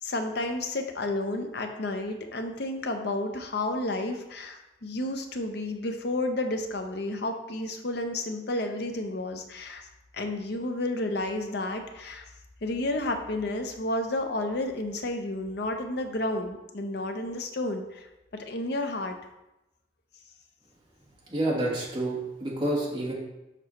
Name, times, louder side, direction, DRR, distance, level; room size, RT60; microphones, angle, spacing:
voice 1, 0.0-9.9 10.1-12.2 12.6-18.1 18.5-19.2, left 2 dB, 55° left, 5 dB, 0.7 m, -31 dB
voice 2, 21.3-23.1, right 1 dB, 25° right, -5 dB, 1.6 m, -28 dB
6.7 x 5.4 x 3.1 m, 0.95 s
head